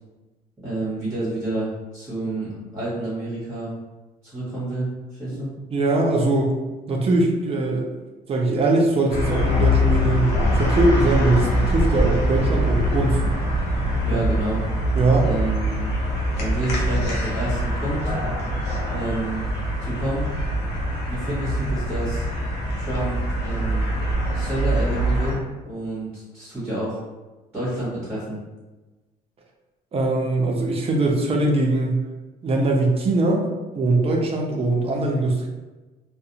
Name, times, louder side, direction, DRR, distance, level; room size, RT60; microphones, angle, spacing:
voice 1, 0.6-3.7 4.2-5.5 14.0-14.6 15.2-15.8 16.4-18.1 18.9-19.4 19.8-20.3 21.1-22.2 22.7-23.9 24.3-27.0 27.5-28.4, right 1 dB, 15° right, -10 dB, 1.1 m, -29 dB
voice 2, 5.7-6.6 6.9-7.9 8.3-13.2 14.1-14.2 14.9-15.3 29.9-32.0 32.4-33.5 33.7-35.5, right 2 dB, 35° right, 0 dB, 0.5 m, -21 dB
sound 1, 9.1-25.4, equal, 75° left, 0.7 m, -23 dB
2.4 x 2.1 x 2.7 m, 1.2 s
cardioid pair, 110°, 17 cm